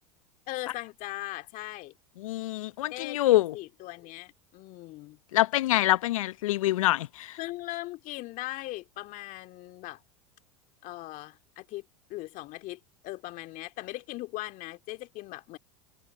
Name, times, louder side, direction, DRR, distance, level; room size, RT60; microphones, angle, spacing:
voice 1, 0.5-1.9 2.9-5.2 7.4-10.0 10.8-11.8 12.1-15.6, left 18 dB, 50° left, 2.3 m, -39 dB
voice 2, 2.2-3.5 5.3-7.4, left 15 dB, 75° left, 0.6 m, -25 dB
hypercardioid pair, 90°, 17 cm